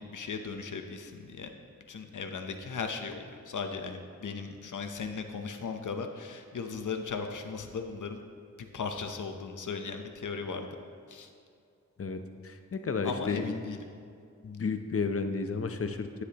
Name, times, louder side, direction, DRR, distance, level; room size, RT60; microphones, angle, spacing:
voice 1, 0.0-1.5 1.9-8.2 8.6-10.7 11.1-11.3 13.0-13.8, left 5 dB, 80° left, 6 dB, 0.8 m, -37 dB
voice 2, 12.0-13.5 14.4-16.2, left 4 dB, 50° left, 8 dB, 0.6 m, -32 dB
9.7 x 9.7 x 2.9 m, 2.4 s
wide cardioid pair, 70°, 30 cm